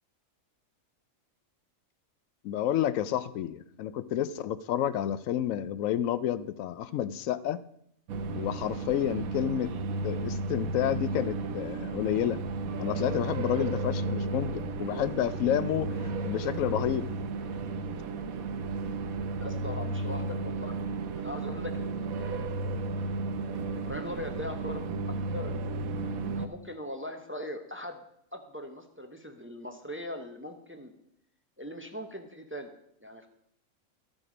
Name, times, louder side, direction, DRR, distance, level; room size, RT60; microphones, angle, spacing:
voice 1, 2.4-7.6 8.3-9.7 10.0-12.4 12.8-17.1, left 11 dB, 75° left, 15 dB, 0.9 m, -30 dB
sound 1, 8.1-26.5, right 3 dB, 85° right, 1.2 m, -33 dB
voice 2, 19.4-20.8 21.2-22.5 23.5-25.6 26.0-28.0 28.3-30.9 31.6-32.7 33.0-33.3, left 1 dB, 15° right, 5 dB, 0.6 m, -40 dB
12.0 x 7.7 x 5.0 m, 0.74 s
omnidirectional pair, 1.4 m